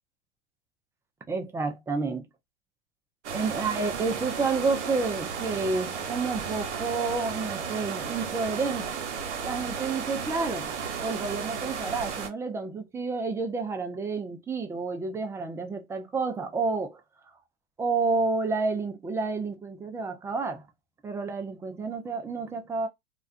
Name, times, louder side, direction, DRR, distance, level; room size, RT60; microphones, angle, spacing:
voice 1, 1.3-2.3 3.3-9.0 9.4-17.0 17.8-20.7 21.0-22.9, right 4 dB, 10° right, 0.3 m, -30 dB
sound 1, 3.2-12.3, right 6 dB, 80° right, 0.9 m, -34 dB
2.4 x 2.2 x 2.4 m
hypercardioid pair, 110°, 35 cm